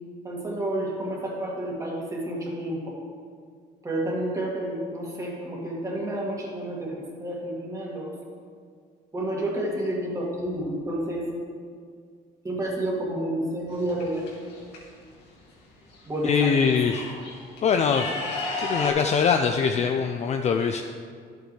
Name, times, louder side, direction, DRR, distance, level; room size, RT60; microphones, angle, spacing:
voice 1, 0.2-3.0 3.8-8.1 9.1-11.3 12.4-14.2 16.1-16.7, right 1 dB, 20° right, -3 dB, 2.1 m, -30 dB
sound 1, 13.7-14.8 15.9-16.0 16.3-18.9, left 3 dB, 80° left, 2.3 m, -34 dB
voice 2, 16.2-17.1 17.6-18.1 18.6-20.8, left 6 dB, 40° left, 5 dB, 0.4 m, -23 dB
11.0 x 8.1 x 3.3 m, 2.1 s
cardioid pair, 110°, 17 cm